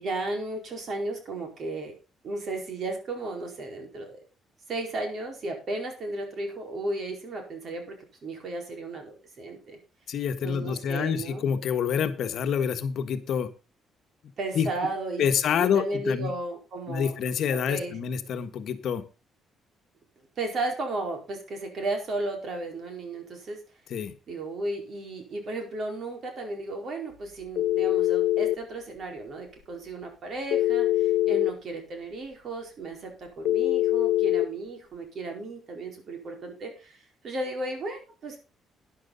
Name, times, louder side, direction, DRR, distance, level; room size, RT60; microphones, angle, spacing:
voice 1, 0.0-1.9 2.2-4.2 4.7-9.8 10.4-11.4 14.4-15.2 15.6-17.2 17.7-17.9 20.4-23.6 24.3-38.4, right 2 dB, 45° right, 3 dB, 4.6 m, -34 dB
voice 2, 10.1-13.5 14.5-14.7 15.2-16.3 16.9-19.0 23.9-24.1, left 7 dB, 60° left, 8 dB, 1.4 m, -27 dB
Telephone, 27.6-28.6 30.5-31.5 33.5-34.5, left 14 dB, 80° left, 0.6 m, -23 dB
12.5 x 10.5 x 4.1 m, 0.31 s
cardioid pair, 145°, 0 cm